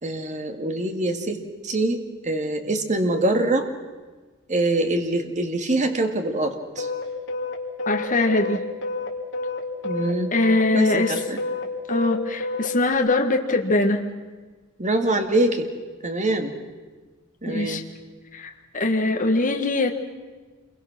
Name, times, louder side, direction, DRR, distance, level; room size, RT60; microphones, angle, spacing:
voice 1, 0.0-3.7 4.5-6.9 9.8-10.3 10.7-11.4 14.8-15.7 16.0-16.6 17.4-17.8, right 2 dB, 35° right, 5 dB, 2.2 m, -24 dB
sound 1, 6.8-12.9, left 2 dB, 60° left, 3.1 m, -29 dB
voice 2, 7.9-8.6 10.3-11.1 11.9-14.0 17.5-17.8 18.3-19.9, left 2 dB, 40° left, 3 dB, 1.8 m, -22 dB
28.0 x 23.0 x 6.2 m, 1.4 s
head